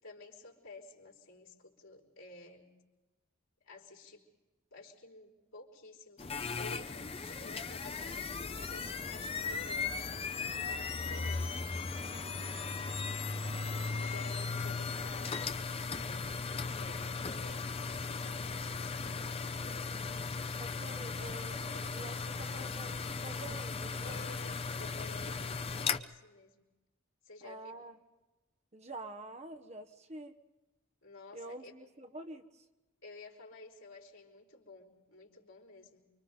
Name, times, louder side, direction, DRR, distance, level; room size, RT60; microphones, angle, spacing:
voice 1, 0.0-2.8 3.6-4.2 4.7-11.7 12.3-13.5 13.9-20.1 24.0-26.7 27.2-27.8 31.0-31.7 33.0-36.1, left 2 dB, 80° left, -1 dB, 4.8 m, -53 dB
sound 1, 6.2-26.0, left 4 dB, 25° left, 0.6 m, -37 dB
voice 2, 20.6-24.3 27.4-28.0 28.7-30.4 31.3-32.6, right 2 dB, 30° right, 5 dB, 1.2 m, -47 dB
29.5 x 24.5 x 4.0 m, 1.1 s
head